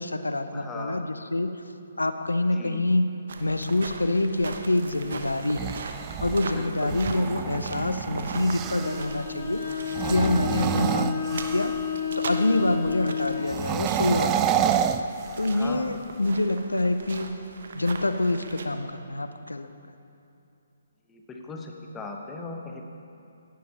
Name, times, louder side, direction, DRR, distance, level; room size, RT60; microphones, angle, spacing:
voice 1, 0.0-1.5 2.0-3.1 3.4-5.7 6.2-9.6 10.0-11.7 12.2-14.6 15.4-17.4 17.7-19.7, left 2 dB, 85° left, 9 dB, 0.6 m, -26 dB
voice 2, 0.5-1.0 2.5-2.8 6.5-7.0 10.6-10.9 15.5-15.9 21.1-22.8, left 3 dB, 15° left, 1 dB, 1.1 m, -39 dB
sound 1, 3.3-18.7, right 4 dB, 60° right, 0.9 m, -40 dB
sound 2, 5.3-9.1 9.8-11.9 13.4-15.7, right 9 dB, 20° right, 0.4 m, -29 dB
Bowed string instrument, 8.6-13.5, left 7 dB, 50° left, 1.6 m, -31 dB
17.0 x 11.0 x 2.9 m, 2.6 s
figure-of-eight pair, 135°, 0 cm